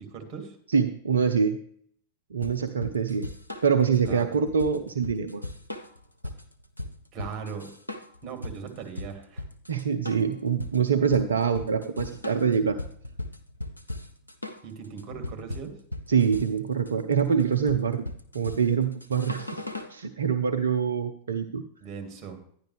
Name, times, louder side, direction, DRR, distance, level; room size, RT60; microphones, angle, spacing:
voice 1, 0.0-0.6 4.0-4.4 7.1-7.7 8.2-9.5 14.6-15.8 21.8-22.4, right 6 dB, 35° right, 4 dB, 2.5 m, -39 dB
voice 2, 0.7-1.6 2.3-3.3 3.6-5.4 9.7-12.8 16.1-18.1 18.3-19.6 19.9-21.6, right 6 dB, 70° right, 7 dB, 0.5 m, -25 dB
sound 1, 2.4-20.0, left 1 dB, 85° left, 0.8 m, -38 dB
11.5 x 10.0 x 3.4 m, 0.62 s
figure-of-eight pair, 90°, 0 cm